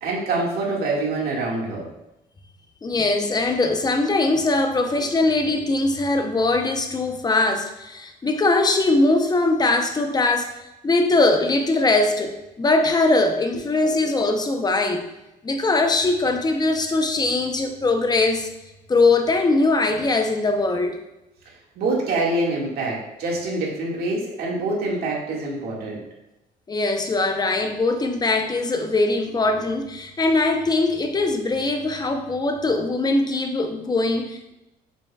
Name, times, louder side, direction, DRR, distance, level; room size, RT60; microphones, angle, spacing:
voice 1, 0.0-1.8 21.8-26.0, right 2 dB, 70° right, -3 dB, 2.1 m, -25 dB
voice 2, 2.8-10.5 10.8-15.0 15.4-18.5 18.9-21.0 26.7-34.5, left 2 dB, 25° left, 5 dB, 0.8 m, -21 dB
7.0 x 6.1 x 2.4 m, 0.92 s
cardioid pair, 110°, 17 cm